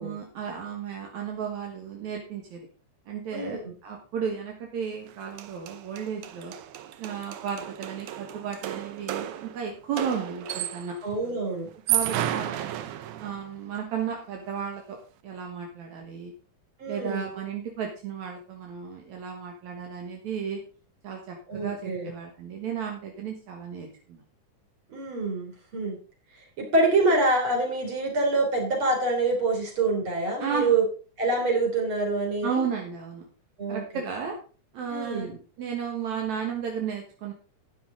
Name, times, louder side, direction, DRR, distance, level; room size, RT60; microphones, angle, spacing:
voice 1, 0.0-2.7 3.1-6.5 7.0-11.0 11.9-12.8 13.2-15.0 15.2-16.3 16.9-20.6 21.0-24.2 30.4-30.7 32.4-33.3 33.7-34.4 34.7-37.3, right 7 dB, 75° right, 1 dB, 2.9 m, -34 dB
sound 1, 5.1-5.2 5.4-11.0 11.7-13.5, right 12 dB, 90° right, 2.3 m, -33 dB
voice 2, 11.0-11.7 16.8-17.3 21.5-22.1 24.9-26.0 26.6-30.8 31.2-32.6 33.6-33.8 34.9-35.4, right 2 dB, 45° right, 1 dB, 4.2 m, -26 dB
11.5 x 9.9 x 3.8 m, 0.37 s
omnidirectional pair, 3.3 m